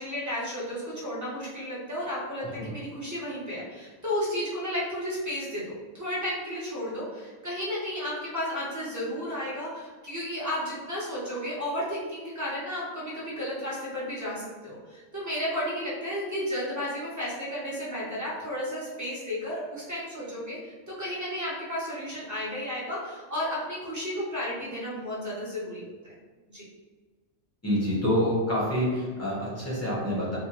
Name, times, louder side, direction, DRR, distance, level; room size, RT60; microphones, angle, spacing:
voice 1, 0.0-26.2 26.5-26.6, equal, 20° right, -7 dB, 0.5 m, -33 dB
voice 2, 27.6-30.4, equal, 15° left, -7 dB, 0.7 m, -27 dB
3.4 x 2.2 x 2.9 m, 1.4 s
omnidirectional pair, 1.5 m